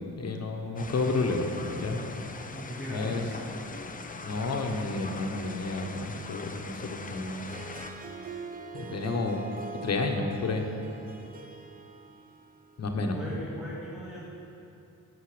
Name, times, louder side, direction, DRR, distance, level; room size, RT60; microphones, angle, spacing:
voice 1, 0.2-1.5 1.7-2.0 2.9-3.2 4.2-7.5 8.7-9.4 9.8-10.6 12.8-13.2, left 3 dB, 50° left, 3 dB, 1.2 m, -30 dB
sound 1, 0.8-7.9, left 4 dB, 25° left, 0.6 m, -41 dB
voice 2, 2.5-3.1 12.9-14.2, equal, ahead, -8 dB, 2.1 m, -39 dB
Harp, 7.5-12.8, right 4 dB, 25° right, 0.9 m, -43 dB
13.0 x 8.1 x 5.0 m, 2.8 s
cardioid pair, 105°, 32 cm